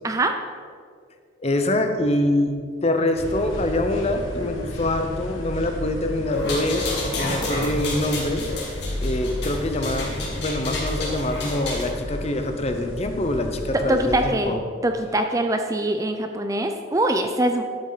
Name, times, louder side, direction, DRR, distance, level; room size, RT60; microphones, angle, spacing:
voice 1, 1.4-8.5 9.0-14.6, left 1 dB, 30° left, 6 dB, 0.8 m, -25 dB
stereo ambient room kitchen indoors, 3.2-14.3, left 1 dB, 85° left, 1.2 m, -32 dB
sound 1, 6.3-11.9, left 2 dB, 55° left, 2.7 m, -31 dB
voice 2, 13.7-14.6 14.8-17.6, right 1 dB, 15° right, 6 dB, 0.4 m, -23 dB
11.5 x 8.6 x 4.0 m, 2.1 s
head